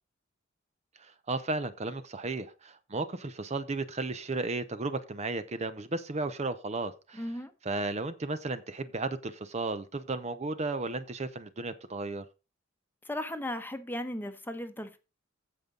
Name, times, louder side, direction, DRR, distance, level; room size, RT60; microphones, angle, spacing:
voice 1, 1.0-7.2 7.6-12.2, right 3 dB, 35° right, 0.7 m, -34 dB
voice 2, 7.1-7.5 13.0-15.0, left 1 dB, 10° left, 1.0 m, -36 dB
15.0 x 5.3 x 3.8 m
head